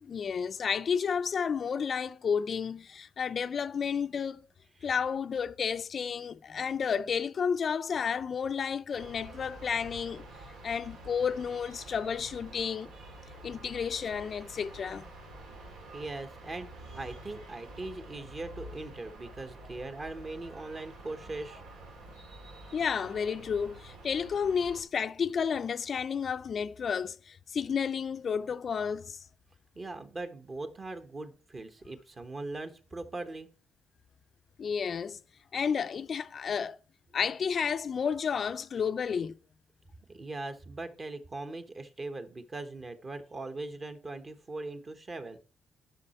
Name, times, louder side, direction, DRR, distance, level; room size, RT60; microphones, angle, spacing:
voice 1, 0.0-4.4 4.8-10.2 10.6-12.9 13.4-15.1 22.7-29.2 34.6-35.2 35.5-36.8 37.1-39.3, left 6 dB, 50° left, 0.4 m, -31 dB
sound 1, 9.0-24.8, right 1 dB, 85° right, 2.4 m, -48 dB
voice 2, 15.9-21.6 29.7-33.5 40.1-45.4, right 2 dB, 35° right, 1.1 m, -40 dB
10.5 x 5.7 x 4.3 m
cardioid pair, 90°, 0 cm